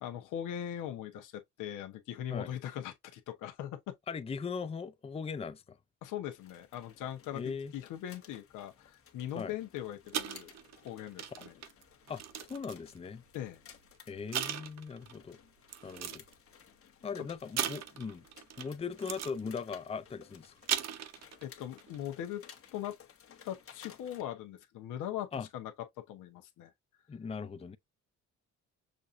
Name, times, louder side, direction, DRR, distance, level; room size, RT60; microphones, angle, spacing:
voice 1, 0.0-3.9 6.0-11.5 13.3-13.6 17.2-17.3 21.4-22.4 22.7-23.0 23.4-25.7 26.1-26.7, left 11 dB, 90° left, 1.0 m, -40 dB
voice 2, 4.1-5.8 7.3-7.7 9.4-9.5 11.4-11.5 12.1-12.2 12.5-13.2 14.1-15.4 15.8-16.2 17.0-18.2 18.6-20.5 25.3-25.5 27.1-27.8, left 5 dB, 20° left, 0.5 m, -39 dB
sound 1, 6.4-24.2, left 8 dB, 50° left, 1.2 m, -58 dB
sound 2, 10.1-13.0 13.7-13.9 14.3-15.2 15.7-16.3 17.6-18.7 19.0-19.4 20.4-21.4 21.8-22.0, right 9 dB, 60° right, 0.8 m, -37 dB
6.5 x 2.7 x 2.5 m
cardioid pair, 90°, 30 cm